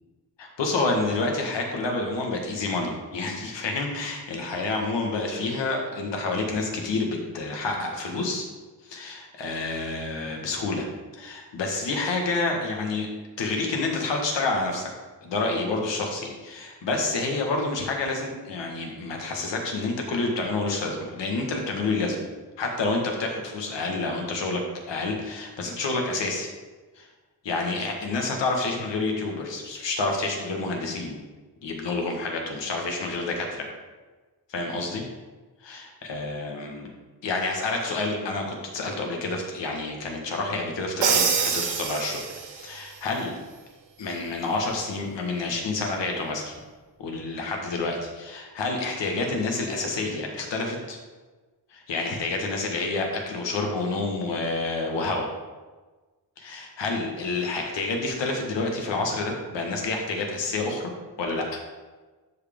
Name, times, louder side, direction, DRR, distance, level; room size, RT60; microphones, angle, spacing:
voice 1, 0.4-8.5 8.8-10.9 11.2-13.1 13.4-14.9 15.2-22.2 22.6-24.6 24.9-26.5 27.0-27.1 27.4-31.2 31.6-33.7 34.5-35.0 35.6-36.9 37.2-43.3 44.0-46.5 47.0-51.0 51.7-55.3 56.4-60.8 61.2-61.6, left 3 dB, 85° left, 1 dB, 1.7 m, -28 dB
Crash cymbal, 41.0-42.7, right 6 dB, 90° right, 1.2 m, -25 dB
12.5 x 4.8 x 3.6 m, 1.3 s
wide cardioid pair, 150°, 42 cm